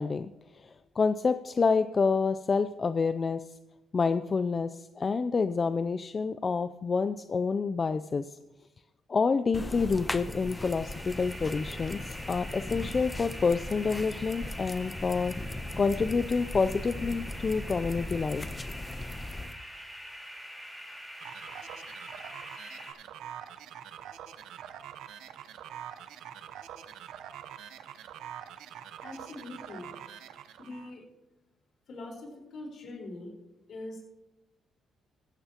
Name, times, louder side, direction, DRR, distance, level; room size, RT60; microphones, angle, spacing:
voice 1, 0.0-3.4 3.9-8.4 9.1-15.3 15.8-18.5, left 4 dB, 35° left, 11 dB, 0.4 m, -28 dB
sound 1, 9.5-19.5, left 2 dB, 20° left, 0.8 m, -39 dB
sound 2, 9.7-22.9, equal, ahead, 4.2 m, -45 dB
sound 3, 21.2-30.9, right 10 dB, 85° right, 0.8 m, -45 dB
voice 2, 29.0-29.9 30.6-31.0 31.9-33.3 33.7-34.0, left 2 dB, 65° left, 0 dB, 4.4 m, -42 dB
15.5 x 15.0 x 2.9 m, 0.99 s
cardioid pair, 90°, 0 cm